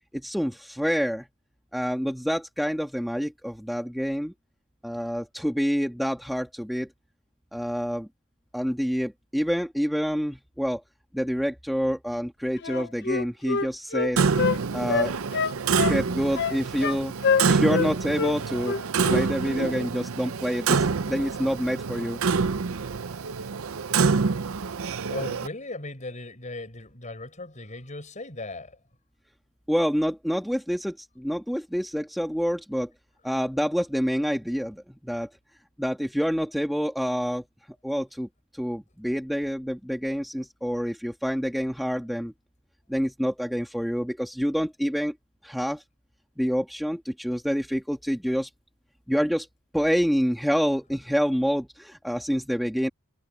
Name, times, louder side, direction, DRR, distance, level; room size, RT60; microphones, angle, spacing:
voice 1, 0.1-1.3 1.7-4.3 4.8-6.9 7.5-8.1 8.5-10.8 11.1-14.2 14.7-15.1 15.9-17.2 17.5-22.2 29.7-32.9 33.2-35.3 35.8-37.4 37.8-42.3 42.9-45.1 45.4-45.8 46.4-48.5 49.1-49.5 49.7-52.9, equal, ahead, 1.5 m, -27 dB
Wind instrument woodwind instrument, 12.6-14.6 14.9-16.0 16.3-17.0 17.2-17.9 18.1-18.3 18.6-19.3 19.5-19.7, left 5 dB, 55° left, 0.7 m, -26 dB
Clock, 14.2-25.5, right 5 dB, 80° right, 0.6 m, -26 dB
voice 2, 25.1-28.8, left 2 dB, 35° left, 5.7 m, -37 dB
head